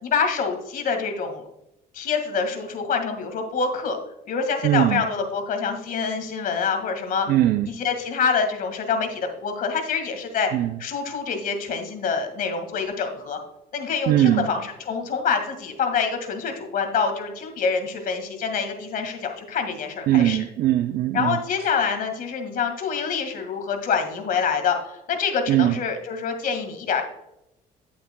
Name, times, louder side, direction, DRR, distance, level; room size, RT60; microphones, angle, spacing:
voice 1, 0.0-1.5 1.9-4.0 4.3-7.3 7.7-10.5 10.8-13.4 13.7-20.4 21.1-27.0, left 5 dB, 55° left, 5 dB, 1.9 m, -26 dB
voice 2, 4.6-5.0 7.3-7.7 10.5-10.7 14.1-14.5 20.1-21.4 25.5-25.7, right 13 dB, 65° right, 9 dB, 0.5 m, -20 dB
9.9 x 8.4 x 2.2 m, 0.85 s
cardioid pair, 110°, 17 cm